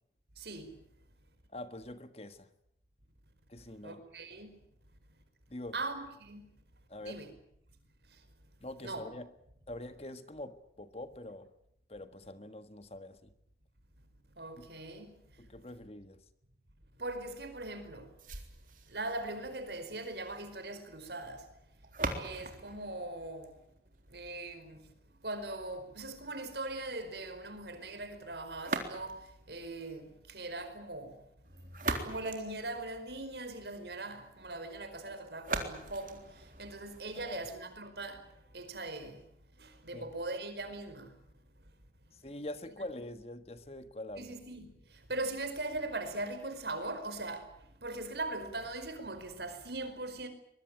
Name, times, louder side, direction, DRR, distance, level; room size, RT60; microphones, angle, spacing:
voice 1, 0.4-0.7 3.8-4.6 5.7-6.5 7.0-7.3 8.8-9.0 14.4-15.1 17.0-18.1 18.9-21.4 22.2-23.5 24.1-24.8 25.2-29.2 29.5-31.2 32.0-36.2 36.6-38.2 38.5-39.2 39.6-41.1 44.2-44.7 45.1-47.5 47.8-50.3, right 2 dB, 75° right, 4.9 m, -40 dB
voice 2, 1.5-2.5 3.5-4.0 5.5-5.8 6.9-7.2 8.6-9.3 9.7-11.5 11.9-13.3 14.5-14.7 15.4-16.2 37.1-37.4 39.9-40.1 42.1-44.4, left 1 dB, 35° left, 1.6 m, -44 dB
sound 1, 18.2-24.2 28.6-29.4 31.4-33.4 35.4-37.4, right 3 dB, 50° right, 3.6 m, -41 dB
23.5 x 22.0 x 9.0 m
head